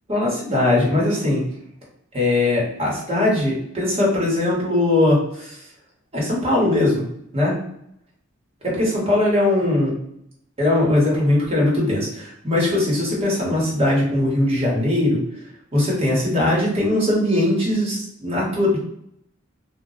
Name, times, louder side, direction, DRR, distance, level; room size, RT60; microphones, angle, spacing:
voice 1, 0.1-1.4 2.1-5.6 6.1-7.0 7.3-7.5 8.6-9.9 10.6-15.2 15.7-18.8, left 1 dB, 30° right, -4 dB, 1.1 m, -20 dB
2.3 x 2.0 x 3.7 m, 0.75 s
head